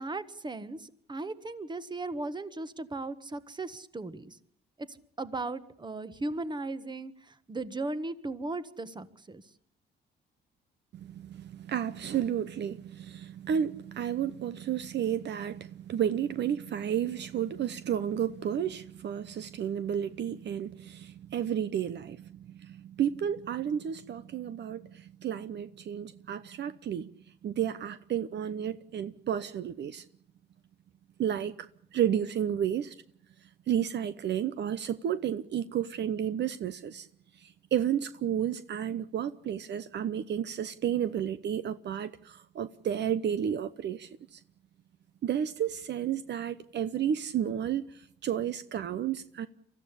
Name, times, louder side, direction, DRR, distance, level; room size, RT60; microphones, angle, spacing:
voice 1, 0.0-4.4 4.9-9.4, right 2 dB, 20° right, 1.5 m, -37 dB
voice 2, 10.9-27.1 27.4-30.0 31.2-33.0 33.7-37.1 37.3-44.4 45.2-49.5, right 9 dB, 60° right, 0.9 m, -32 dB
24.5 x 14.5 x 9.9 m
cardioid pair, 90°, 20 cm